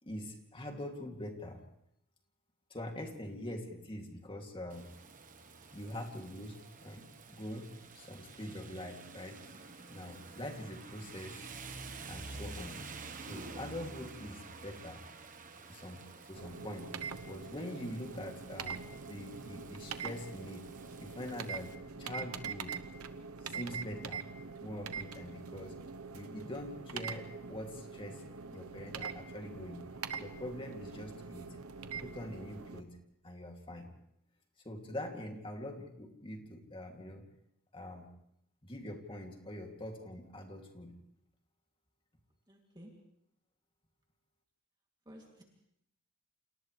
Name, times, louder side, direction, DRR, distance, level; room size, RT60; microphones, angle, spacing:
voice 1, 0.0-1.6 2.7-4.9 5.7-11.5 12.1-12.8 13.2-15.0 15.7-16.9 17.2-20.7 21.0-21.7 22.0-22.8 23.4-24.3 24.6-25.8 26.1-28.2 28.5-29.8 30.2-31.6 32.0-32.9 33.2-33.9 34.6-37.2 37.7-38.1 38.6-40.9, left 1 dB, 25° left, 2 dB, 2.7 m, -44 dB
Rain, 4.7-21.7, right 3 dB, 35° right, 1.3 m, -50 dB
sound 1, 16.4-32.8, right 5 dB, 80° right, 1.0 m, -44 dB
voice 2, 42.5-42.9 45.0-45.4, equal, 20° right, -1 dB, 2.8 m, -53 dB
29.5 x 27.5 x 3.3 m, 0.75 s
head